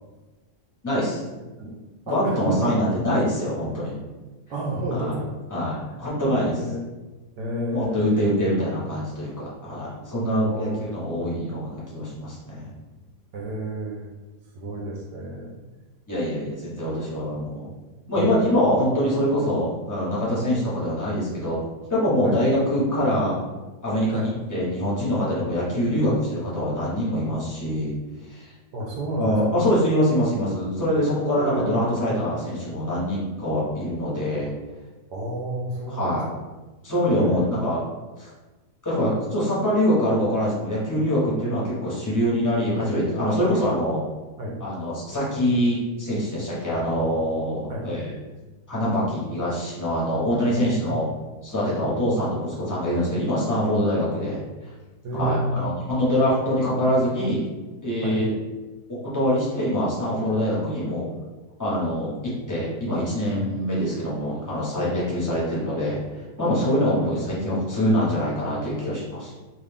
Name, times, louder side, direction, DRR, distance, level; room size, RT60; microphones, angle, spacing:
voice 1, 0.8-1.2 2.1-3.9 4.9-5.1 5.5-6.7 7.7-12.7 16.1-17.7 18.1-21.6 21.9-23.4 23.8-27.9 28.3-28.4 29.2-34.5 35.9-36.3 36.8-37.8 38.2-38.3 38.8-44.0 44.6-48.1 48.7-51.1 51.4-54.5 55.1-57.4 57.8-58.3 58.9-61.1 61.6-66.0 66.4-69.3, equal, 15° left, -7 dB, 0.7 m, -24 dB
voice 2, 2.1-2.8 4.5-5.3 5.8-6.0 6.6-6.9 7.4-8.1 10.4-10.9 13.3-14.1 14.5-15.5 18.2-18.3 22.2-22.4 24.1-24.3 28.7-29.6 31.4-31.8 35.1-36.1 37.2-37.5 44.4-44.6 47.7-47.9 51.6-51.8 55.0-55.5 58.0-58.2 63.3-63.5 67.0-67.1, right 1 dB, 80° right, -2 dB, 1.2 m, -30 dB
3.1 x 2.5 x 3.4 m, 1.2 s
omnidirectional pair, 1.8 m